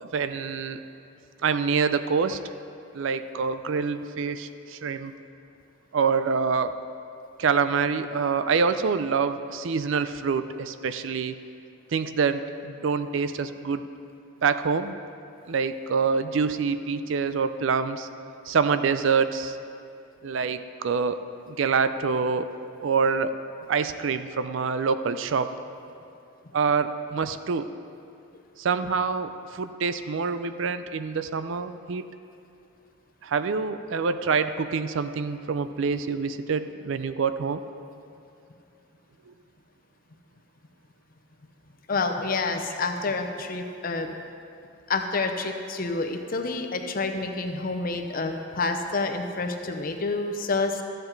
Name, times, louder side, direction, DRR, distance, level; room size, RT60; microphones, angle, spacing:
voice 1, 0.0-0.8 1.4-2.4 2.9-5.1 5.9-6.8 7.4-11.4 11.9-13.8 14.4-15.0 15.5-18.1 18.5-19.6 20.2-21.2 21.5-22.5 22.8-23.3 23.7-25.5 26.5-27.7 28.6-32.0 33.2-37.6 39.3-39.4, right 5 dB, 65° right, 11 dB, 0.4 m, -26 dB
voice 2, 41.9-44.2 44.9-50.8, left 3 dB, 45° left, 5 dB, 0.7 m, -28 dB
13.0 x 7.8 x 4.6 m, 2.6 s
head